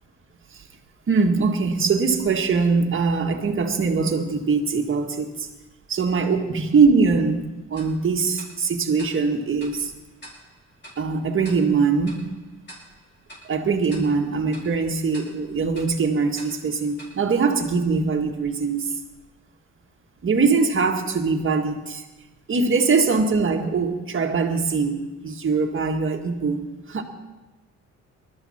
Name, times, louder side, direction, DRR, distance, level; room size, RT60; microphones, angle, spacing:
voice 1, 1.1-5.5 5.9-9.9 11.0-12.3 13.5-18.9 20.2-22.0 22.5-27.0, right 4 dB, 45° right, 4 dB, 1.9 m, -22 dB
Tick-tock, 7.8-18.2, equal, 35° left, 5.9 m, -48 dB
20.0 x 13.0 x 4.4 m, 1.1 s
cardioid pair, 90°, 30 cm